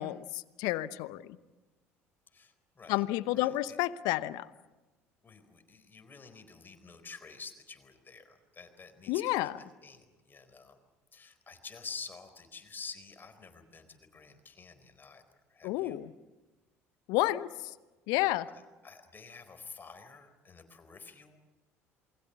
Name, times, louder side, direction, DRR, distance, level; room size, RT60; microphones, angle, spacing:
voice 1, 0.0-1.4 2.9-4.5 9.1-9.6 15.6-16.1 17.1-17.7 18.1-18.5, left 17 dB, 60° left, 16 dB, 0.9 m, -30 dB
voice 2, 2.3-3.0 3.3-3.8 5.2-9.5 9.8-10.8 11.1-15.2 15.5-16.0 18.5-21.4, left 5 dB, 25° left, 8 dB, 4.2 m, -49 dB
28.0 x 22.5 x 7.0 m, 1.2 s
figure-of-eight pair, 60°, 7 cm